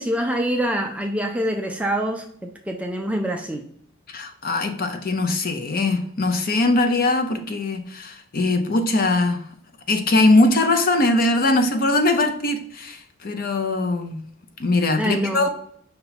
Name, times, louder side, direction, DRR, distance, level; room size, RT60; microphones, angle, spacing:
voice 1, 0.0-3.7 15.0-15.5, equal, 5° right, 3 dB, 0.3 m, -25 dB
voice 2, 4.1-9.5 9.9-14.2 14.6-15.5, left 2 dB, 45° left, 6 dB, 0.6 m, -21 dB
5.6 x 2.2 x 4.0 m, 0.67 s
head